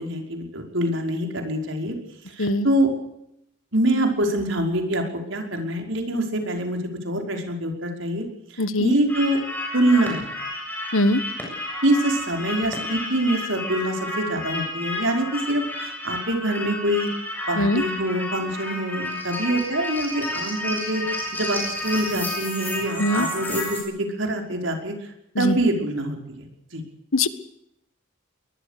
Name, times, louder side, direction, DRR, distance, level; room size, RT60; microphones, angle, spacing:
voice 1, 0.0-1.9 2.3-2.9 3.7-5.0 5.3-6.8 7.0-8.2 8.5-9.4 9.7-10.3 11.8-17.1 17.5-24.9 25.4-26.5 26.7-26.8, right 1 dB, 70° right, 3 dB, 5.4 m, -25 dB
voice 2, 8.6-8.9 10.9-11.2 17.6-17.8 23.0-23.3 25.3-25.6 27.1-27.3, left 1 dB, 85° left, 13 dB, 1.6 m, -21 dB
sound 1, 9.1-23.8, left 1 dB, 10° left, 7.2 m, -31 dB
23.0 x 20.5 x 6.8 m, 0.79 s
head